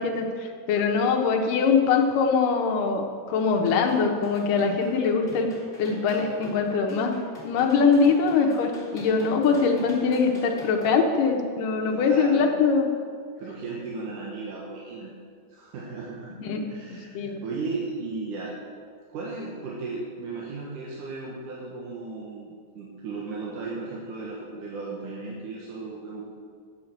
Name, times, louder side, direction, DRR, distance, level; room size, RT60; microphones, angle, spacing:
voice 1, 0.0-5.5 5.8-7.2 7.4-12.9 16.4-16.6 17.1-17.4, left 5 dB, 90° left, 3 dB, 2.7 m, -23 dB
sound 1, 3.6-10.9, left 2 dB, 25° left, 2.5 m, -43 dB
voice 2, 11.9-12.5 13.4-15.1 15.5-16.3 16.7-18.5 19.1-26.2, right 3 dB, 75° right, -4 dB, 2.8 m, -35 dB
8.8 x 7.5 x 8.0 m, 2.2 s
omnidirectional pair, 3.7 m